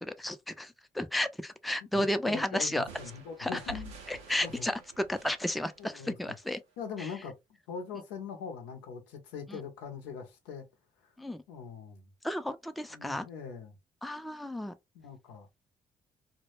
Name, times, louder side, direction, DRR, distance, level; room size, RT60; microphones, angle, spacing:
voice 1, 0.0-2.8 3.4-3.6 4.1-6.6 7.0-7.1 9.5-9.6 11.2-11.4 12.2-13.3 14.0-14.7, left 1 dB, ahead, 0.4 m, -33 dB
voice 2, 1.9-3.9 4.4-4.7 5.8-6.3 6.8-7.3 7.7-10.6 11.5-12.1 12.9-13.8 14.9-15.5, left 6 dB, 85° left, 0.6 m, -42 dB
sound 1, 2.9-6.5, right 3 dB, 90° right, 0.6 m, -49 dB
2.1 x 2.1 x 3.0 m
hypercardioid pair, 45°, 17 cm